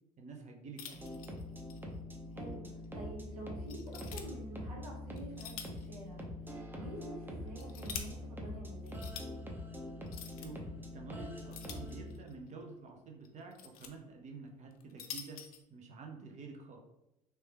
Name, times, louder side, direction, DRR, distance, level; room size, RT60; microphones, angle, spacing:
voice 1, 0.2-1.0 10.4-15.4 15.7-16.8, right 4 dB, 40° right, 2 dB, 0.8 m, -49 dB
sound 1, 0.8-1.8 2.1-2.2 2.8-2.9 3.7-4.3 5.2-5.9 6.2-6.3 7.2-8.1 8.9-9.3 10.1-10.5 11.5-12.3 13.2-13.9 14.7-15.6, left 7 dB, 85° left, 0.5 m, -46 dB
Nebula - Techno house loop., 0.9-12.2, left 1 dB, 10° right, 0.8 m, -44 dB
voice 2, 2.3-2.7 2.9-6.3 6.7-9.1, right 1 dB, 90° right, -2 dB, 1.1 m, -48 dB
3.3 x 3.1 x 2.9 m, 0.89 s
hypercardioid pair, 65°, 18 cm